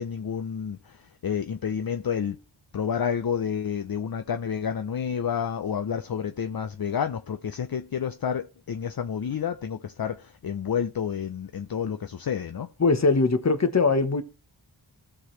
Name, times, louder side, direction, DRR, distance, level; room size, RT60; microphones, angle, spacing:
voice 1, 0.0-2.4 2.7-12.7, left 7 dB, 55° left, 0.6 m, -30 dB
voice 2, 12.8-14.2, left 3 dB, 35° left, 1.0 m, -21 dB
16.0 x 6.0 x 3.2 m
wide cardioid pair, 75°, 45 cm